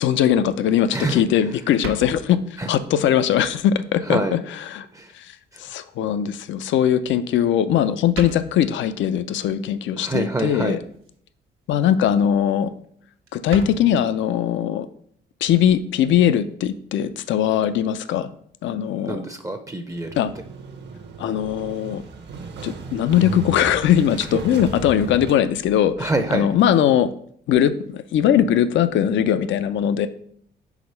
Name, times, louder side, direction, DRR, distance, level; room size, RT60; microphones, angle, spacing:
voice 1, 0.0-2.4 2.7-4.9 5.1-5.3 5.6-10.8 11.7-12.7 13.3-14.9 15.4-18.3 18.6-19.2 20.2-20.3 21.2-22.0 22.6-27.1 27.5-30.1, left 10 dB, 70° left, 13 dB, 0.5 m, -20 dB
voice 2, 0.9-1.2 2.6-2.7 4.1-4.4 4.9-5.1 10.0-10.8 18.9-20.1 26.0-26.5, right 2 dB, 15° right, 7 dB, 0.5 m, -25 dB
sound 1, 1.8-2.7 3.4-3.6 4.1-4.2 5.5-5.6 7.2-7.6 7.9-8.0 8.1-8.8 10.7-11.2 11.6-11.8 12.2-12.3 12.5-12.6 12.8-12.9 13.3-13.8, right 3 dB, 85° right, 1.1 m, -35 dB
Motorcycle, 19.9-26.7, right 4 dB, 60° right, 0.9 m, -36 dB
4.9 x 3.7 x 5.4 m, 0.64 s
cardioid pair, 90°, 20 cm